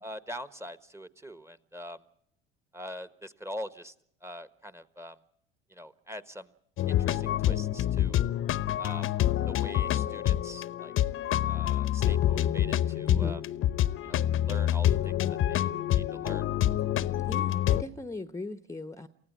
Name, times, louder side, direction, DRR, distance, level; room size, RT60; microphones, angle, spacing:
voice 1, 0.0-2.0 2.7-3.9 4.2-5.2 5.7-6.5 6.9-8.2 8.8-9.1 9.5-10.9 11.4-13.4 14.0-15.7 15.9-16.5, equal, 10° right, 14 dB, 1.3 m, -43 dB
sound 1, 6.8-17.8, left 12 dB, 45° left, 1.0 m, -27 dB
voice 2, 13.1-13.4 17.2-19.1, left 2 dB, 10° left, 13 dB, 1.0 m, -38 dB
28.5 x 16.0 x 8.3 m, 0.73 s
hypercardioid pair, 65°, 29 cm